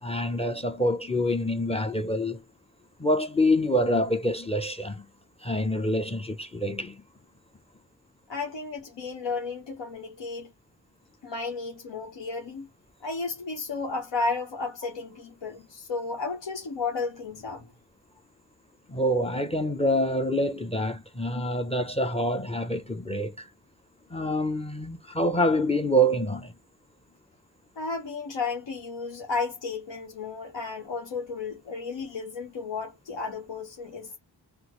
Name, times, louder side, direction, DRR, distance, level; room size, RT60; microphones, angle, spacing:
voice 1, 0.0-2.4 3.0-5.1 5.4-7.0 18.9-23.5 24.1-26.5, equal, 15° left, 0.6 m, -26 dB
voice 2, 8.3-10.5 11.2-12.7 13.0-17.7 27.8-34.2, left 4 dB, 85° left, 0.9 m, -33 dB
3.4 x 2.0 x 2.9 m
cardioid pair, 45°, 42 cm